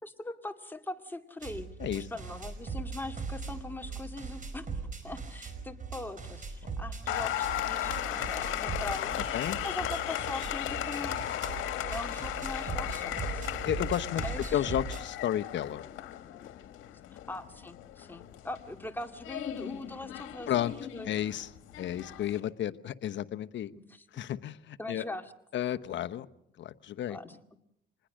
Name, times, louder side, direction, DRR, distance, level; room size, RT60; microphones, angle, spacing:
voice 1, 0.0-1.7 1.9-11.2 11.9-13.5 14.1-14.7 17.1-21.1 23.7-24.1 24.8-25.3 27.1-27.4, left 2 dB, 10° left, 5 dB, 2.2 m, -41 dB
sound 1, 1.4-15.0, right 5 dB, 40° right, 5.0 m, -40 dB
Applause, 7.1-22.4, left 12 dB, 90° left, 1.5 m, -36 dB
voice 2, 13.6-14.2 14.5-15.8 20.5-20.7 21.0-21.5 21.8-23.7 24.2-25.0 25.5-26.3 26.6-27.2, left 11 dB, 65° left, 11 dB, 1.0 m, -32 dB
26.0 x 20.5 x 6.5 m, 0.77 s
cardioid pair, 90°, 20 cm